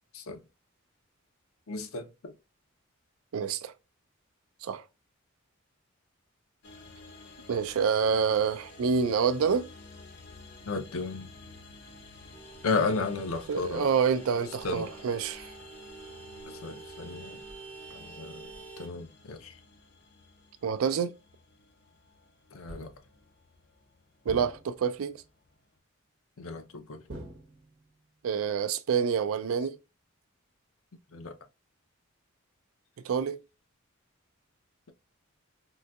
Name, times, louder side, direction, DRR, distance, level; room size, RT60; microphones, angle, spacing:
voice 1, 1.7-2.3 10.7-11.3 12.6-13.9 14.6-14.9 16.4-17.4 17.9-18.5 18.8-19.6 22.5-22.9 26.4-27.0 31.1-31.4, left 3 dB, 90° left, 0.6 m, -33 dB
voice 2, 3.3-3.7 4.6-4.8 7.5-9.7 13.5-15.5 20.6-21.1 24.3-25.2 28.2-29.8 33.0-33.4, right 6 dB, 80° right, 0.4 m, -27 dB
sound 1, 6.6-25.8, left 3 dB, 50° left, 0.7 m, -52 dB
Vehicle horn car horn honking, 12.3-18.9, right 4 dB, 10° left, 0.5 m, -48 dB
sound 2, 22.7-23.2 24.3-25.0 27.1-28.0, right 1 dB, 65° right, 1.0 m, -45 dB
3.7 x 2.7 x 2.3 m
head